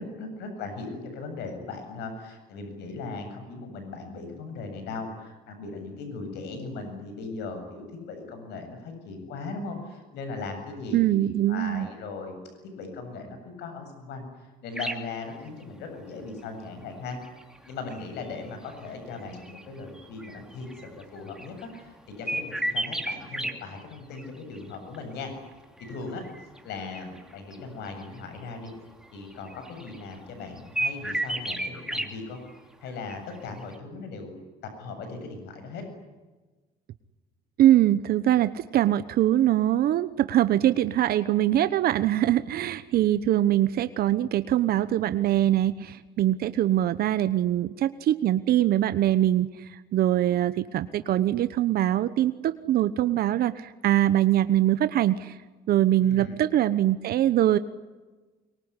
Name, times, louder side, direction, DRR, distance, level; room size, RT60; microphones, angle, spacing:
voice 1, 0.0-17.2 17.7-25.3 25.9-26.2 26.6-28.7 29.1-32.4 32.8-34.4 34.6-35.8 56.0-56.4, left 3 dB, 80° left, 6 dB, 7.7 m, -38 dB
voice 2, 10.9-11.9 37.6-55.4 55.7-57.6, right 12 dB, 65° right, 12 dB, 1.1 m, -23 dB
sound 1, 14.7-15.1 16.2-16.3 17.1-21.8 22.3-23.5 23.8-24.3 24.5-25.0 25.8-27.6 27.8-28.4 28.7-28.8 29.0-30.1 30.4-32.1 32.5-32.6 32.9-33.4 33.6-33.7, right 1 dB, 5° right, 3.0 m, -33 dB
24.0 x 23.5 x 10.0 m, 1.2 s
cardioid pair, 110°, 17 cm